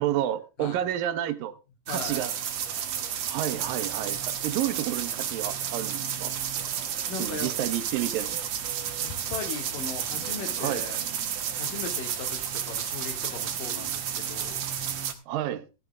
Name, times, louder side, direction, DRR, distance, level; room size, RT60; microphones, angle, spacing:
voice 1, 0.0-1.5 1.9-2.3 3.2-6.3 7.2-8.4 10.6-10.8 15.3-15.6, right 12 dB, 80° right, 2.7 m, -30 dB
voice 2, 1.9-2.3 7.1-7.5 9.0-11.0 11.5-14.6, left 5 dB, 75° left, 4.0 m, -38 dB
sound 1, 1.9-15.1, right 9 dB, 60° right, 2.4 m, -31 dB
16.0 x 11.0 x 3.5 m
omnidirectional pair, 3.9 m